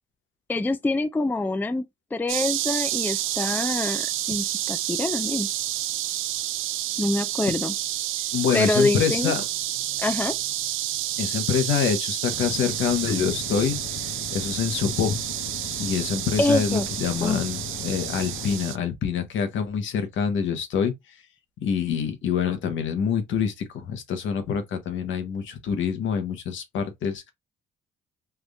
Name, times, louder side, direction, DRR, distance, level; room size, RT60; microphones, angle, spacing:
voice 1, 0.5-1.8 2.1-5.5 7.0-7.7 8.5-9.3 10.0-10.3 16.4-16.9 17.2-17.4, left 2 dB, 10° left, 0.4 m, -25 dB
sound 1, 2.3-18.8, right 13 dB, 85° right, 0.5 m, -29 dB
voice 2, 8.3-9.5 11.2-15.2 15.8-20.9 21.6-27.3, left 7 dB, 75° left, 1.2 m, -26 dB
sound 2, 12.3-18.6, left 9 dB, 55° left, 0.6 m, -38 dB
3.5 x 2.5 x 3.4 m
cardioid pair, 90°, 20 cm